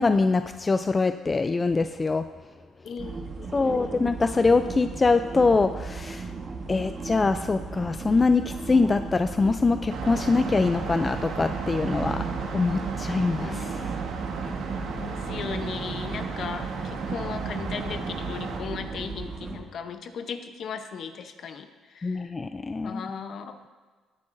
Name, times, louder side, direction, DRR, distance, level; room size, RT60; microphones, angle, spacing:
voice 1, 0.0-2.3 3.5-6.3 6.7-12.3 12.5-14.0 22.0-23.0, left 3 dB, 25° left, 9 dB, 0.3 m, -24 dB
voice 2, 2.8-4.0 6.3-6.9 12.8-12.9 13.2-13.8 15.0-22.3 22.8-23.6, left 6 dB, 55° left, 8 dB, 0.8 m, -37 dB
sound 1, 3.0-19.6, right 4 dB, 35° right, 1.3 m, -37 dB
sound 2, 9.9-18.6, right 5 dB, 75° right, 1.6 m, -34 dB
17.5 x 9.7 x 2.6 m, 1.4 s
cardioid pair, 115°, 0 cm